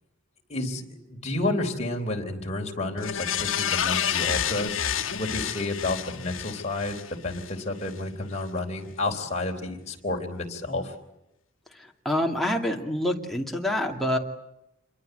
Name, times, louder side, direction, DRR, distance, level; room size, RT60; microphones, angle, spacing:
voice 1, 0.5-0.8 1.1-10.9, left 2 dB, 35° left, 1 dB, 3.8 m, -30 dB
sound 1, 3.0-7.5 7.9-8.0, left 9 dB, 70° left, 1.3 m, -29 dB
voice 2, 11.7-14.2, left 1 dB, ahead, 0 dB, 2.5 m, -27 dB
27.0 x 23.5 x 8.0 m, 0.86 s
head